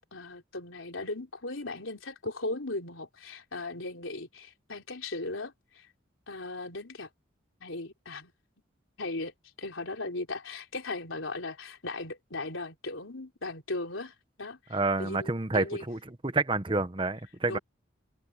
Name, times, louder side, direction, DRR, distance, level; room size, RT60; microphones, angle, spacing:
voice 1, 0.0-5.9 6.3-7.1 7.6-8.3 9.0-9.3 9.6-15.9 17.5-17.6, left 2 dB, 90° left, 3.9 m, -37 dB
voice 2, 14.7-17.6, right 3 dB, 25° right, 1.0 m, -29 dB
open air
head